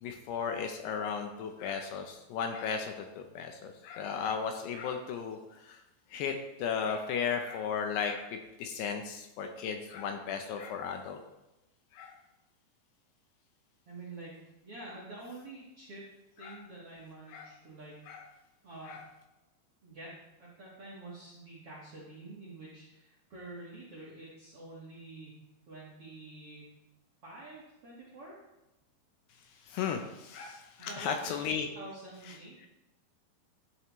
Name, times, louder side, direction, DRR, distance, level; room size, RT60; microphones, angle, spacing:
voice 1, 0.0-5.8 6.1-6.3 6.6-11.2 11.9-12.2 16.4-16.6 17.3-17.5 18.1-18.2 18.9-19.0 29.7-31.7, left 6 dB, 80° left, 4 dB, 2.6 m, -35 dB
voice 2, 13.9-14.3 14.6-16.1 16.4-18.0 18.6-19.0 19.8-20.1 20.4-25.4 25.7-26.7 27.2-28.4 30.8-31.4 31.7-32.7, right 2 dB, 60° right, -6 dB, 1.5 m, -47 dB
12.5 x 7.7 x 3.1 m, 0.95 s
omnidirectional pair, 5.2 m